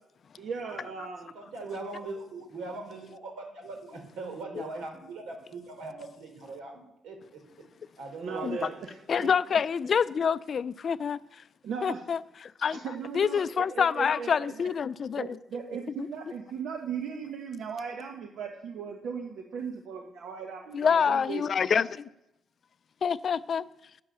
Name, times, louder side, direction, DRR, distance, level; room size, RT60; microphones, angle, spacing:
voice 1, 0.4-1.4 8.2-8.9 9.2-9.6 11.6-12.0 12.7-14.7 15.2-21.8, right 6 dB, 70° right, 1.1 m, -37 dB
voice 2, 1.3-7.4 8.0-8.9, right 3 dB, 85° right, 3.3 m, -40 dB
voice 3, 9.1-11.4 11.8-12.2 12.6-12.8 13.1-15.4 20.7-22.1 23.0-23.6, left 6 dB, 50° left, 0.4 m, -27 dB
10.0 x 9.0 x 6.9 m
cardioid pair, 90°, 0 cm